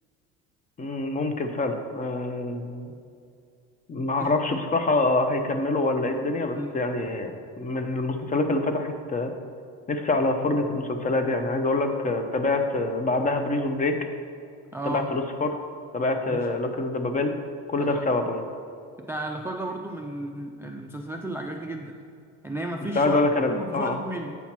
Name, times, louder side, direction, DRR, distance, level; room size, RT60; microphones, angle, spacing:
voice 1, 0.8-2.9 3.9-9.3 9.9-14.0 14.9-15.5 15.9-17.3 17.7-18.4 22.9-24.0, left 2 dB, 25° left, 6 dB, 0.7 m, -25 dB
voice 2, 14.7-15.1 16.3-16.5 17.8-18.0 19.1-21.9 22.4-23.2 23.5-24.3, right 1 dB, 10° right, 2 dB, 0.4 m, -33 dB
8.1 x 2.9 x 5.9 m, 2.4 s
supercardioid pair, 90°, 31 cm